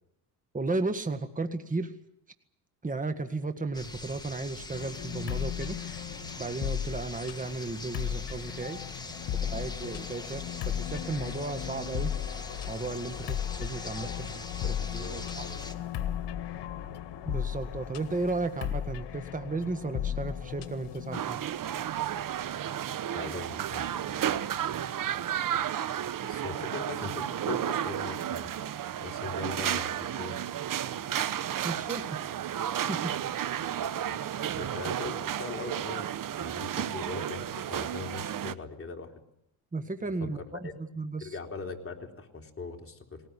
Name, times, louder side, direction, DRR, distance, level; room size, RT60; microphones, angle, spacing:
voice 1, 0.5-1.9 2.8-5.8 6.4-8.8 9.4-12.1 12.7-14.1 14.6-15.5 17.3-21.5 31.6-32.6 32.9-33.1 39.7-40.7 41.0-41.3, right 3 dB, 20° right, 8 dB, 1.7 m, -34 dB
sound 1, 3.7-15.7, left 2 dB, 10° left, 1.8 m, -43 dB
sound 2, 4.7-21.2, left 10 dB, 70° left, 1.7 m, -36 dB
voice 2, 13.8-14.2 14.6-15.7 23.1-25.1 26.2-28.5 29.0-30.4 34.0-36.1 36.4-39.1 40.2-40.3 40.6-40.7 41.2-43.2, left 4 dB, 30° left, 2 dB, 3.6 m, -41 dB
sound 3, 21.1-38.5, right 10 dB, 50° right, 1.0 m, -32 dB
20.0 x 19.5 x 9.9 m, 0.79 s
cardioid pair, 90°, 43 cm